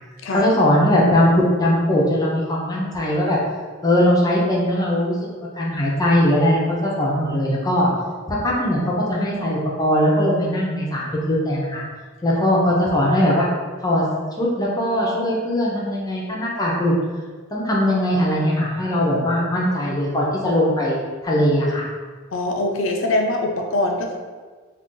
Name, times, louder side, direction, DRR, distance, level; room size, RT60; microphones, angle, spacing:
voice 1, 0.3-3.4 3.8-5.2 5.6-7.9 8.3-11.8 12.2-13.5 13.8-14.0 14.4-16.9 17.5-21.0 21.2-21.8, left 1 dB, 20° left, -4 dB, 0.6 m, -20 dB
voice 2, 22.3-24.2, left 2 dB, 70° left, 3 dB, 0.4 m, -23 dB
2.5 x 2.4 x 3.7 m, 1.4 s
head